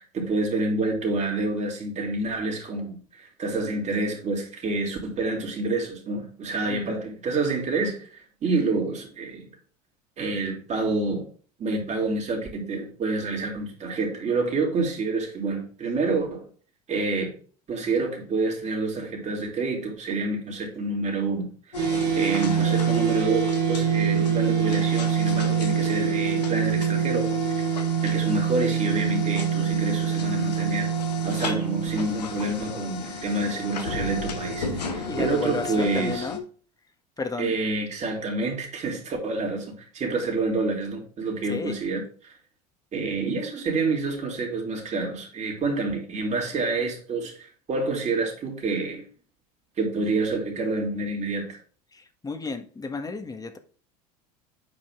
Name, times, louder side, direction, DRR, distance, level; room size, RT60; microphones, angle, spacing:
voice 1, 0.0-9.5 10.2-11.3 11.6-16.5 16.9-17.4 17.7-27.6 28.0-30.9 31.2-36.2 37.4-42.3 42.9-49.1 49.8-51.6, right 3 dB, 35° right, 3.3 m, -28 dB
voice 2, 6.7-7.0 35.1-36.4 37.2-37.6 41.4-41.8 51.9-53.6, left 3 dB, 20° left, 1.5 m, -33 dB
sound 1, 21.7-36.4, left 2 dB, 85° left, 1.4 m, -33 dB
sound 2, 21.8-32.1, right 9 dB, 65° right, 1.3 m, -25 dB
9.0 x 5.0 x 3.7 m
hypercardioid pair, 75°, 20 cm